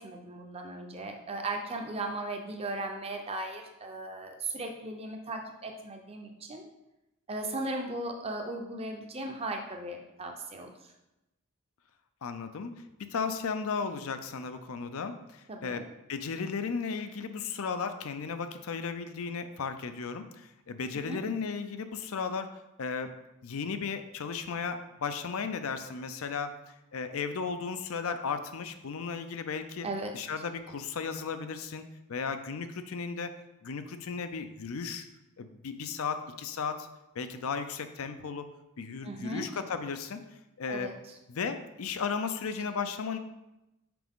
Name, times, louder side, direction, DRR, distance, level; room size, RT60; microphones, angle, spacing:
voice 1, 0.0-6.7 7.3-10.7 15.5-15.8 21.1-21.2 29.8-30.1 39.0-39.5 40.7-40.9, right 2 dB, 25° right, 3 dB, 0.6 m, -37 dB
voice 2, 12.2-22.5 22.8-29.9 30.1-31.8 32.1-33.4 33.6-35.1 35.4-36.9 37.2-38.5 38.8-40.2 40.6-40.9 41.3-43.2, left 5 dB, 65° left, 9 dB, 0.5 m, -35 dB
6.0 x 4.8 x 3.6 m, 0.93 s
head